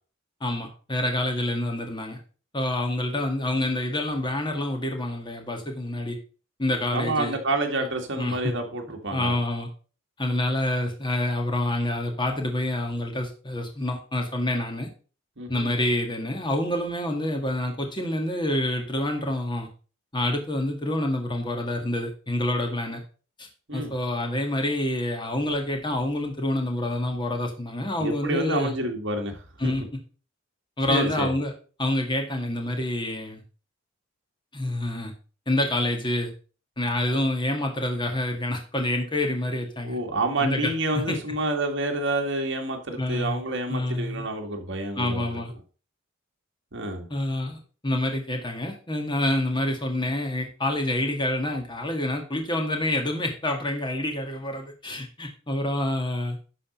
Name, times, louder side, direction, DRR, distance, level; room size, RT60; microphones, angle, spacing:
voice 1, 0.4-2.2 2.5-6.2 6.6-7.4 8.2-8.5 9.1-9.7 10.2-14.9 15.5-19.7 20.1-23.0 23.4-28.7 29.6-29.8 30.8-31.5 31.8-33.4 34.5-35.1 35.5-36.3 36.8-40.0 40.4-41.2 42.9-43.4 43.7-44.3 45.0-45.5 47.1-56.4, left 1 dB, 25° left, 3 dB, 1.9 m, -27 dB
voice 2, 6.9-9.4 15.4-15.7 23.7-23.9 28.0-29.4 29.6-29.7 30.9-31.4 39.8-45.4 46.7-47.0, right 2 dB, 65° right, 3 dB, 1.9 m, -28 dB
11.5 x 4.2 x 5.3 m, 0.37 s
head